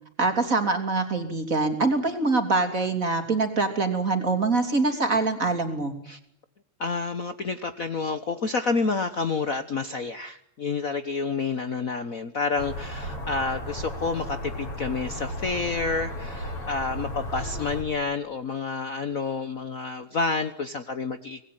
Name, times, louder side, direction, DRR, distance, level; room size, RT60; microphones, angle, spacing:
voice 1, 0.2-5.9, right 3 dB, 25° right, 7 dB, 3.4 m, -24 dB
voice 2, 6.8-21.4, left 4 dB, 80° left, 10 dB, 0.7 m, -29 dB
sound 1, 12.6-17.8, equal, 50° left, 6.3 m, -34 dB
25.5 x 20.0 x 9.3 m, 0.74 s
omnidirectional pair, 3.3 m